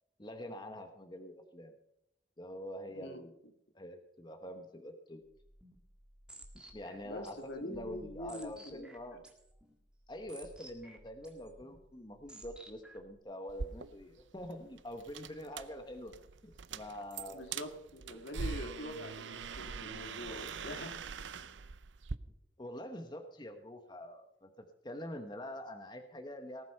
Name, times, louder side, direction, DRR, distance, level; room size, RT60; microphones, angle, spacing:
voice 1, 0.2-1.7 2.4-3.3 3.7-5.2 6.7-9.2 10.1-16.2 16.4-17.6 22.6-26.7, left 1 dB, 25° left, 6 dB, 1.2 m, -45 dB
sound 1, 5.3-13.2, right 1 dB, 5° right, 1.8 m, -56 dB
voice 2, 7.0-9.2 17.3-21.0, left 1 dB, 75° left, 5 dB, 2.1 m, -44 dB
sound 2, 13.5-22.2, right 5 dB, 85° right, 0.7 m, -43 dB
19.0 x 8.2 x 5.6 m, 0.78 s
head